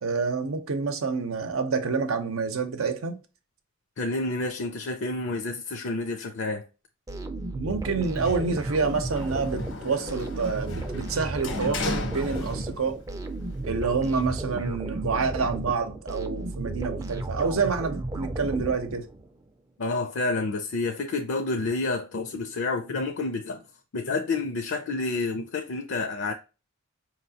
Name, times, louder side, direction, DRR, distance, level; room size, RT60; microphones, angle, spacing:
voice 1, 0.0-3.2 7.5-13.0 13.6-19.1, right 4 dB, 85° right, 0.7 m, -28 dB
voice 2, 4.0-6.7 19.8-23.6 23.9-26.3, left 3 dB, 60° left, 0.5 m, -29 dB
sound 1, 7.1-19.3, right 2 dB, 15° right, 0.4 m, -34 dB
Sliding door, 8.2-13.0 13.3-14.3, left 3 dB, 85° left, 0.9 m, -36 dB
4.9 x 3.0 x 2.8 m
head